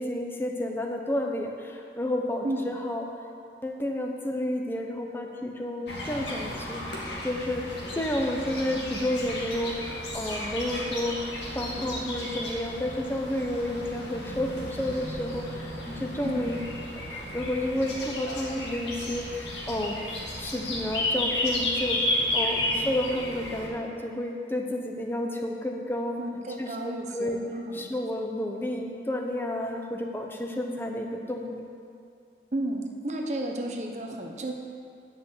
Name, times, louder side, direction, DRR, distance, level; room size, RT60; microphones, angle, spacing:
voice 1, 0.0-3.1 3.6-7.7 7.9-11.2 11.5-16.6 17.1-26.2 26.6-27.4 27.7-31.6, left 1 dB, 10° left, 2 dB, 0.8 m, -31 dB
sound 1, 5.9-23.7, left 1 dB, 75° left, 2.2 m, -33 dB
voice 2, 16.2-16.6 26.2-27.9 32.5-34.5, right 1 dB, 40° right, 2 dB, 1.0 m, -33 dB
10.0 x 6.0 x 8.0 m, 2.4 s
head